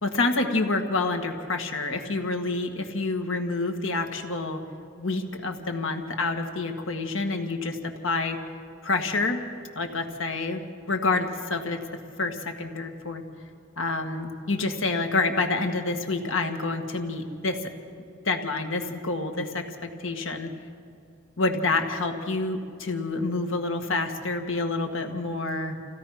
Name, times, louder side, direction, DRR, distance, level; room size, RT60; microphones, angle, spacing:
voice 1, 0.0-4.6 5.0-8.4 8.8-9.4 9.8-11.8 12.2-13.2 13.8-17.7 18.3-20.5 21.4-25.8, left 3 dB, 70° left, 5 dB, 1.9 m, -28 dB
27.5 x 16.5 x 5.9 m, 2.4 s
head